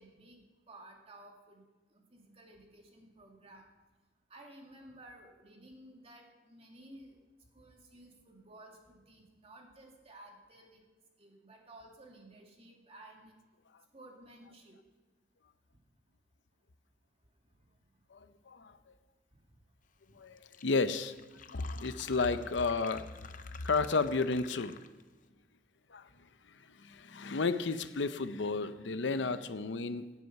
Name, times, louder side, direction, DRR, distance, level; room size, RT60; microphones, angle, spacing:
voice 1, 0.0-1.6 1.9-3.6 4.3-7.2 7.5-10.8 11.2-13.3 13.9-14.8 21.4-21.7, right 1 dB, 35° right, 1 dB, 2.3 m, -55 dB
voice 2, 18.1-18.8 20.2-21.1 21.5-23.1 23.6-24.8 25.9-26.1 26.5-30.1, left 4 dB, 85° left, 12 dB, 0.7 m, -32 dB
Fill (with liquid), 20.1-20.2 20.4-25.1, left 7 dB, 45° left, 0.6 m, -52 dB
17.0 x 8.4 x 5.8 m, 1.2 s
head